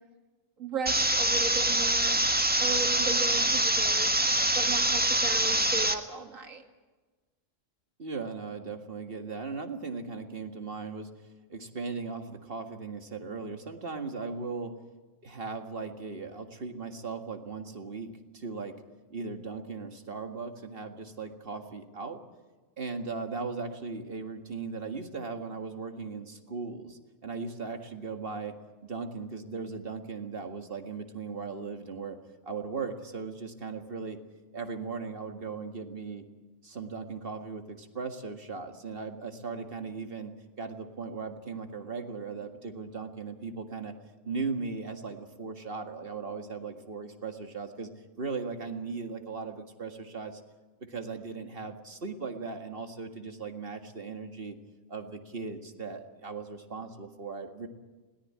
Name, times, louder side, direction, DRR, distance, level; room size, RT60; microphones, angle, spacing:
voice 1, 0.6-2.2 2.6-4.1 4.6-6.6, right 4 dB, 85° right, 5 dB, 2.4 m, -36 dB
sound 1, 0.9-5.9, right 1 dB, 10° right, 1.2 m, -25 dB
voice 2, 8.0-11.1 11.5-14.8 15.2-18.8 19.1-22.2 22.8-28.6 28.8-32.2 32.4-34.2 34.5-36.3 36.6-43.9 44.2-47.9 48.2-50.4 50.8-54.6 54.9-57.7, right 4 dB, 45° right, 5 dB, 2.0 m, -38 dB
21.0 x 18.0 x 8.6 m, 1.3 s
omnidirectional pair, 1.3 m